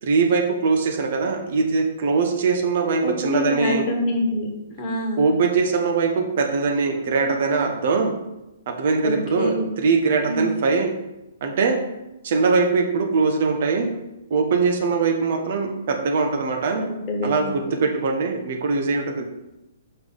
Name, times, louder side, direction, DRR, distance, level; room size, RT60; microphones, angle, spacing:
voice 1, 0.0-3.9 5.2-8.1 8.7-10.9 11.4-11.8 12.2-13.9 14.3-16.8 17.2-19.3, right 4 dB, 50° right, 3 dB, 1.0 m, -21 dB
voice 2, 3.0-4.5 4.8-5.2 9.0-9.7 10.2-10.5 16.8-17.7, left 1 dB, 30° left, 1 dB, 1.5 m, -26 dB
5.8 x 4.7 x 5.3 m, 0.92 s
figure-of-eight pair, 115°, 0 cm